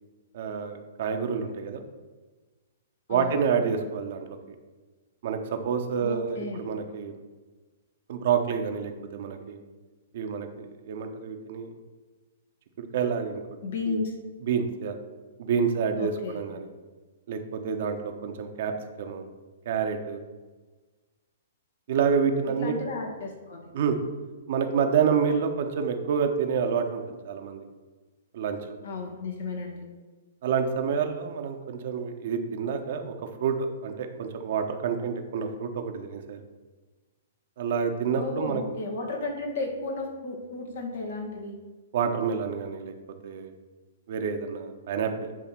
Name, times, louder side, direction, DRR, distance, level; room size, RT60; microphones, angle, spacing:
voice 1, 0.3-1.8 3.1-4.4 5.2-7.1 8.1-9.6 10.1-11.7 12.8-13.4 13.9-14.0 14.4-15.0 15.4-16.7 17.3-19.2 19.6-20.2 21.9-22.7 23.7-24.0 24.5-27.7 28.3-28.7 30.4-33.1 33.4-36.4 37.6-38.6 41.9-42.9 43.2-43.5 44.1-45.3, right 6 dB, 55° right, 5 dB, 1.0 m, -28 dB
voice 2, 3.1-3.4 6.0-6.6 13.6-14.2 16.0-16.4 22.6-23.6 28.8-29.9 38.2-41.6, left 3 dB, 65° left, 1 dB, 1.9 m, -33 dB
10.0 x 3.4 x 5.9 m, 1.3 s
figure-of-eight pair, 120°, 0 cm